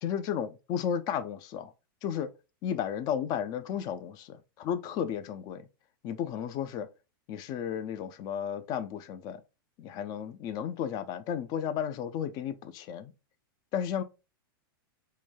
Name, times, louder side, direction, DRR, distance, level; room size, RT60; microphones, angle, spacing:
voice 1, 0.0-1.7 2.0-2.3 2.6-5.7 6.0-6.9 7.3-9.4 9.8-13.1 13.7-14.0, left 8 dB, 35° left, 0.3 m, -33 dB
3.1 x 2.2 x 2.3 m
hypercardioid pair, 135°, 12 cm